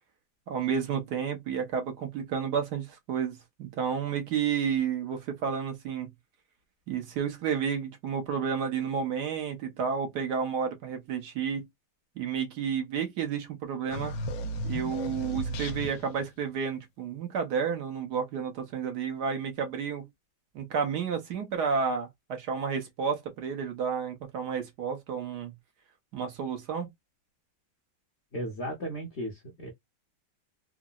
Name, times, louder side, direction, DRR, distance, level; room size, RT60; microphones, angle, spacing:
voice 1, 0.5-6.1 6.9-11.7 12.2-14.1 14.6-20.1 20.5-25.5 26.1-26.9, right 6 dB, 70° right, 1.3 m, -31 dB
sound 1, 13.9-16.2, equal, 90° left, 1.3 m, -34 dB
voice 2, 28.3-29.7, equal, 55° left, 0.8 m, -35 dB
3.7 x 2.0 x 2.2 m
omnidirectional pair, 2.0 m